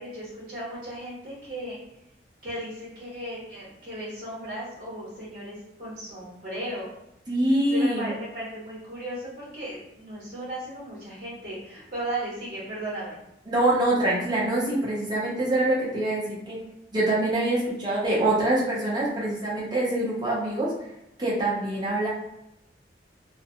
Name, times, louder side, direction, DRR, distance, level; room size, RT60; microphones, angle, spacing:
voice 1, 0.0-1.8 2.4-6.9 7.6-13.2, right 1 dB, 50° right, -8 dB, 1.0 m, -36 dB
voice 2, 7.3-8.1 13.5-16.6 16.9-20.7 21.2-22.1, right 1 dB, 25° right, -6 dB, 0.7 m, -25 dB
2.5 x 2.2 x 2.6 m, 0.84 s
head